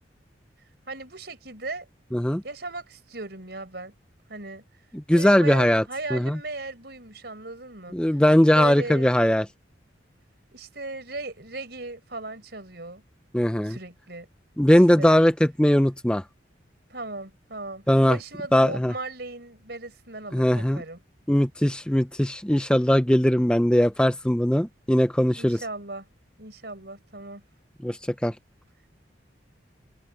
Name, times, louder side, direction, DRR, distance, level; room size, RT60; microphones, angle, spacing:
voice 1, 0.9-1.9 2.4-3.9 4.3-4.6 5.1-8.2 8.5-9.1 10.5-13.0 13.6-14.3 15.0-15.2 16.9-21.0 25.4-26.1 26.4-27.4, right 2 dB, 60° right, 5.4 m, -37 dB
voice 2, 2.1-2.4 5.1-5.8 6.1-6.4 7.9-9.5 13.3-13.8 14.6-16.2 17.9-18.2 18.5-18.9 20.3-20.8 21.3-25.6 27.8-28.3, equal, 5° left, 0.5 m, -20 dB
head